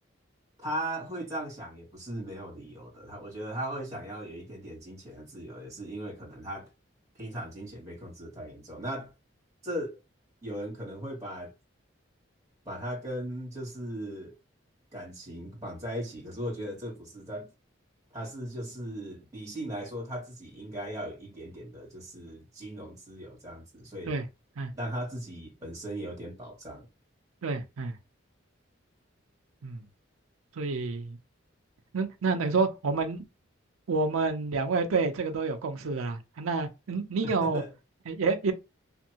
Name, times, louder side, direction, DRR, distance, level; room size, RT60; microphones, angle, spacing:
voice 1, 0.6-6.7 7.1-9.1 9.6-10.0 10.4-11.5 12.6-14.3 14.9-17.5 18.1-24.2 24.7-26.9 37.2-37.7, right 1 dB, 15° right, 1.4 m, -38 dB
voice 2, 27.4-27.9 29.6-29.8 30.6-31.2 31.9-33.2 33.9-37.6 38.1-38.5, right 4 dB, 90° right, 0.5 m, -28 dB
2.6 x 2.6 x 2.8 m
head